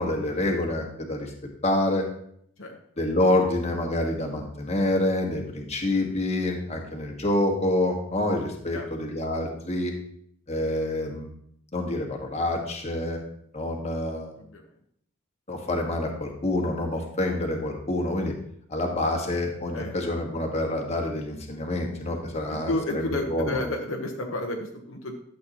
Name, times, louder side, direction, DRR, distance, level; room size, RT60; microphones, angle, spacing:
voice 1, 0.0-1.3 1.6-2.1 3.0-9.9 10.5-11.3 11.7-13.2 13.5-14.3 15.5-18.3 18.7-23.6, left 1 dB, 30° left, 1 dB, 1.6 m, -27 dB
voice 2, 22.5-25.2, left 1 dB, 65° left, 1 dB, 1.1 m, -31 dB
12.0 x 7.9 x 3.0 m, 0.67 s
head